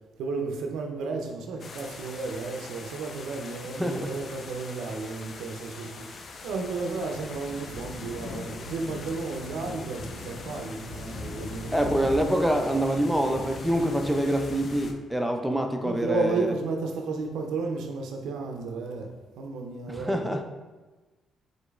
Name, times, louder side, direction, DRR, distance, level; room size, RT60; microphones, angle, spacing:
voice 1, 0.2-11.9 15.8-19.1 19.4-20.3, right 3 dB, 80° right, 3 dB, 0.4 m, -33 dB
sound 1, 1.6-14.9, left 3 dB, 50° left, 0.4 m, -40 dB
voice 2, 3.8-4.1 11.7-16.5 19.9-20.4, right 1 dB, 5° right, 4 dB, 0.5 m, -26 dB
5.0 x 3.9 x 2.3 m, 1.2 s
cardioid pair, 90°, 0 cm